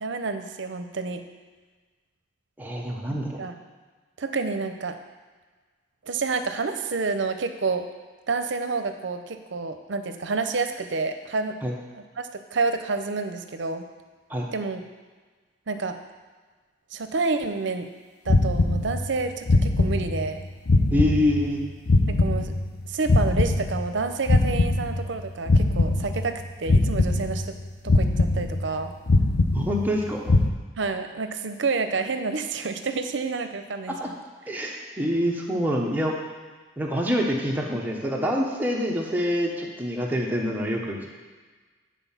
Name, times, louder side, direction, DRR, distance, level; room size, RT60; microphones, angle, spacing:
voice 1, 0.0-1.2 3.1-3.5 4.2-5.0 6.0-7.9 8.3-11.5 11.9-13.9 14.5-14.8 15.7-16.0 16.9-17.9 18.2-20.4 22.1-22.5 22.9-27.5 27.8-28.9 30.8-34.1, right 4 dB, 70° right, 8 dB, 0.6 m, -29 dB
voice 2, 2.6-3.3 11.6-11.7 14.3-14.5 20.9-21.6 29.5-30.4 34.0-34.1 34.5-36.2 36.8-41.1, equal, 10° right, -1 dB, 0.8 m, -26 dB
sound 1, 18.3-19.2 19.5-20.4 20.7-22.8 23.1-25.2 25.5-26.4 26.7-27.6 27.9-28.8 29.1-30.0 30.3-30.5, left 2 dB, 55° left, 0.6 m, -22 dB
9.1 x 4.4 x 5.7 m, 1.4 s
head